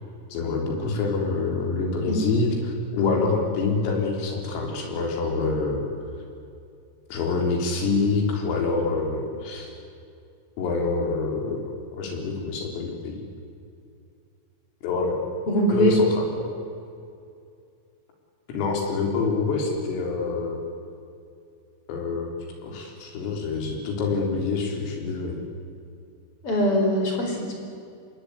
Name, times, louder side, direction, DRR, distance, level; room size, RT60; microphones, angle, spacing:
voice 1, 0.3-5.8 7.1-9.7 10.6-13.2 14.8-15.2 15.7-16.5 18.5-20.6 21.9-22.3 22.6-25.3, left 4 dB, 75° left, 1 dB, 6.6 m, -26 dB
voice 2, 15.5-15.9 26.4-27.5, equal, 30° left, 1 dB, 5.2 m, -22 dB
26.5 x 20.5 x 9.7 m, 2.4 s
omnidirectional pair, 6.0 m